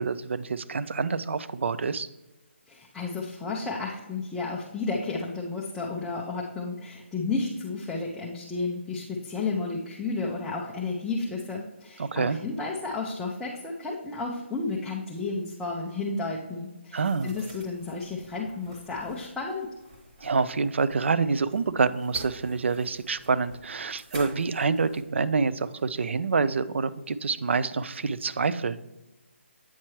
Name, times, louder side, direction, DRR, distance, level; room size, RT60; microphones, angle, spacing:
voice 1, 0.0-2.1 12.0-12.4 16.9-17.3 20.2-28.8, right 4 dB, 70° right, 15 dB, 0.4 m, -27 dB
voice 2, 2.7-19.7, left 3 dB, 5° left, -5 dB, 0.3 m, -32 dB
sound 1, 17.0-25.0, equal, 30° right, 1.4 m, -48 dB
8.6 x 4.4 x 3.1 m, 1.0 s
hypercardioid pair, 165°, 7 cm